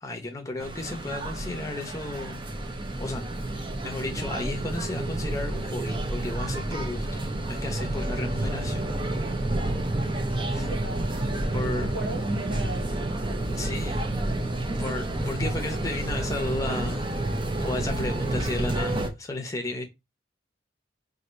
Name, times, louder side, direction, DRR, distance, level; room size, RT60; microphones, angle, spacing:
voice 1, 0.0-2.4 3.0-3.2 3.8-8.9 10.5-10.8 11.5-11.9 13.5-14.0 14.8-17.0 17.6-19.8, left 2 dB, 15° left, 0.7 m, -33 dB
sound 1, 0.6-19.1, right 1 dB, 25° right, 0.6 m, -29 dB
voice 2, 1.1-1.7 10.5-11.0 11.7-12.8, right 2 dB, 80° right, 1.7 m, -38 dB
2.8 x 2.6 x 4.2 m
head